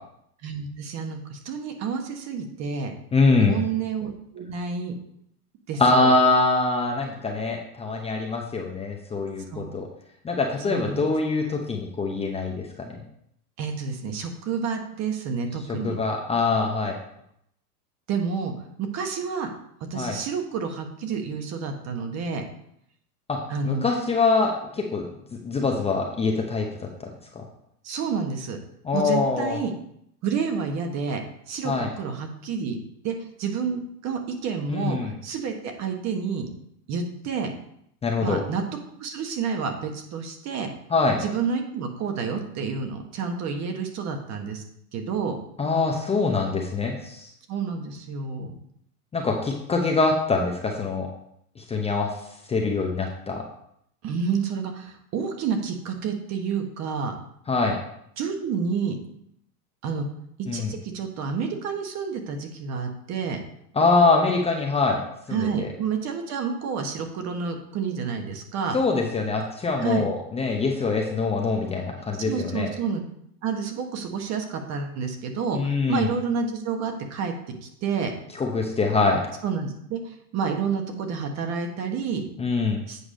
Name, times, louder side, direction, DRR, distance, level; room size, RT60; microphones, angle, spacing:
voice 1, 0.4-2.9 3.5-4.9 5.7-6.1 9.5-9.7 10.7-11.1 13.6-16.0 18.1-19.5 19.9-22.4 23.5-23.8 27.8-28.6 28.9-29.7 30.2-31.2 31.5-32.8 33.0-35.0 35.2-36.5 36.9-37.5 38.2-38.6 39.0-40.7 41.2-44.6 44.9-45.4 47.5-48.5 54.0-57.1 58.2-59.0 59.8-60.1 60.5-63.4 65.3-68.8 69.8-70.0 72.2-73.0 73.4-75.6 75.9-77.3 77.8-78.1 79.4-80.0 80.3-82.2 82.9-83.0, right 6 dB, 35° right, 5 dB, 1.3 m, -29 dB
voice 2, 3.1-3.6 5.8-9.9 10.2-12.9 15.8-17.0 19.9-20.2 23.3-23.4 23.6-25.0 25.4-26.7 27.4-27.5 28.8-29.6 31.6-31.9 34.7-35.1 38.0-38.4 40.9-41.2 45.6-47.3 49.1-51.1 51.6-52.1 52.5-53.4 57.5-57.8 60.5-60.7 63.7-65.0 65.3-65.7 68.7-72.7 75.5-76.1 78.3-79.2 82.4-82.8, left 3 dB, 15° left, 0 dB, 0.8 m, -24 dB
8.3 x 4.9 x 5.0 m, 0.73 s
hypercardioid pair, 120°, 47 cm